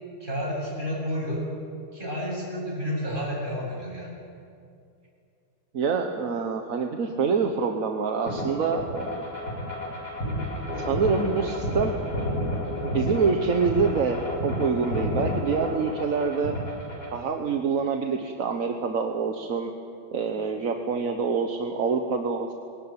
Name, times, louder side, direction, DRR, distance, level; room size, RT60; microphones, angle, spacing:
voice 1, 0.2-1.4 1.9-4.1, equal, 25° right, -4 dB, 7.9 m, -30 dB
voice 2, 5.7-9.1 10.8-12.0 12.8-16.5 17.1-19.7 20.1-22.5, right 5 dB, 50° right, 4 dB, 1.3 m, -26 dB
sound 1, 8.3-17.2, equal, 50° left, 5.0 m, -30 dB
22.0 x 18.5 x 8.8 m, 2.5 s
omnidirectional pair, 2.2 m